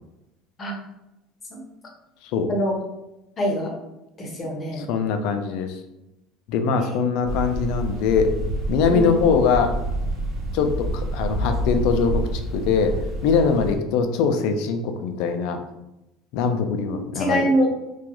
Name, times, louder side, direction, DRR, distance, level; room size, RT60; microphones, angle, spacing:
voice 1, 3.4-3.7 4.2-4.9 6.8-7.0 8.9-9.1 17.1-17.7, equal, 30° left, 0 dB, 0.7 m, -24 dB
voice 2, 4.8-5.7 6.5-8.3 8.7-9.7 10.5-12.9 13.2-15.6 16.3-17.5, left 5 dB, 75° left, 7 dB, 0.3 m, -22 dB
sound 1, 7.2-13.8, right 1 dB, 75° right, 0.9 m, -28 dB
2.3 x 2.2 x 2.9 m, 0.93 s
supercardioid pair, 115°, 0 cm